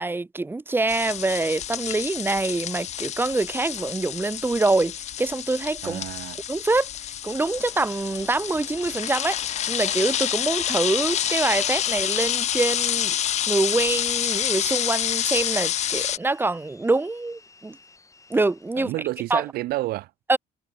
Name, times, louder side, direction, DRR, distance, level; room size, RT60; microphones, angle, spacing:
voice 1, 0.0-6.0 6.5-6.9 7.2-9.4 9.7-17.8 18.3-18.9 19.3-19.4 20.3-20.4, right 2 dB, 10° right, 0.6 m, -25 dB
sound 1, 0.9-16.2, left 11 dB, 45° left, 0.4 m, -28 dB
voice 2, 5.8-6.4 18.8-20.1, right 17 dB, 65° right, 0.4 m, -29 dB
sound 2, 7.3-18.9, left 3 dB, 20° left, 2.3 m, -51 dB
cardioid pair, 110°, 17 cm